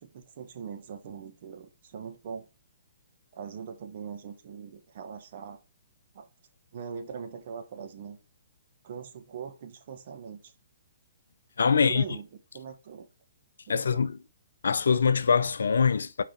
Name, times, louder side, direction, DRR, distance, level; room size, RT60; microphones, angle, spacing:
voice 1, 0.0-2.5 3.3-5.6 6.1-6.3 6.7-8.2 8.8-10.5 11.7-13.1 13.7-14.1, right 7 dB, 50° right, 1.4 m, -41 dB
voice 2, 11.6-12.0 13.7-14.1 14.6-16.2, left 6 dB, 75° left, 0.5 m, -23 dB
5.7 x 4.9 x 4.2 m
figure-of-eight pair, 130°, 0 cm